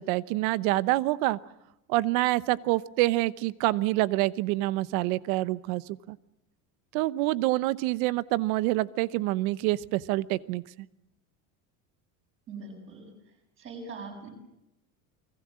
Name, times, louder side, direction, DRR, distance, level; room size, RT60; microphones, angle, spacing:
voice 1, 0.0-1.4 1.9-5.8 6.1-6.2 6.9-10.6, right 18 dB, 80° right, 17 dB, 1.1 m, -26 dB
voice 2, 12.5-13.1 13.6-14.3, right 4 dB, 30° right, 3 dB, 7.3 m, -41 dB
29.0 x 21.0 x 7.6 m, 0.86 s
cardioid pair, 180°, 42 cm